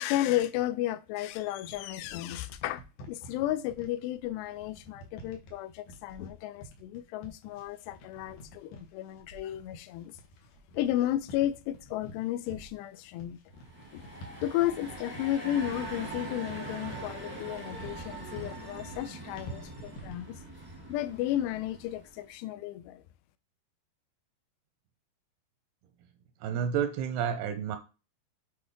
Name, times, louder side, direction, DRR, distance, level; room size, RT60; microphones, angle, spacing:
voice 1, 0.0-10.2 10.8-13.4 13.9-14.0 14.4-20.4 20.9-23.0, left 13 dB, 85° left, 2.7 m, -33 dB
sound 1, 1.2-20.4, equal, 65° left, 2.6 m, -49 dB
sound 2, 13.5-22.3, right 2 dB, 10° right, 1.0 m, -43 dB
voice 2, 26.4-27.8, right 8 dB, 85° right, 2.5 m, -30 dB
8.4 x 4.4 x 3.5 m
omnidirectional pair, 4.8 m